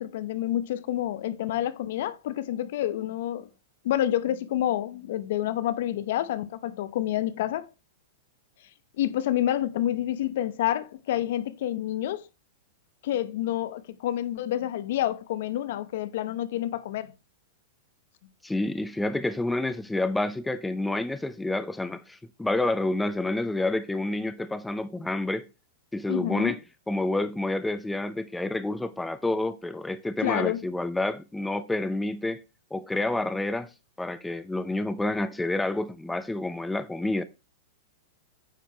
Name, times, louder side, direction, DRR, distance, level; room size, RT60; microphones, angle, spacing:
voice 1, 0.0-3.5 3.8-7.7 9.0-12.2 13.0-17.1 26.1-26.6 30.2-30.6, left 12 dB, 65° left, 0.7 m, -28 dB
voice 2, 18.4-25.5 25.9-26.6 26.9-32.4 32.7-33.7 34.0-37.2, left 2 dB, 5° left, 0.5 m, -29 dB
9.2 x 4.6 x 4.4 m
supercardioid pair, 145°, 0 cm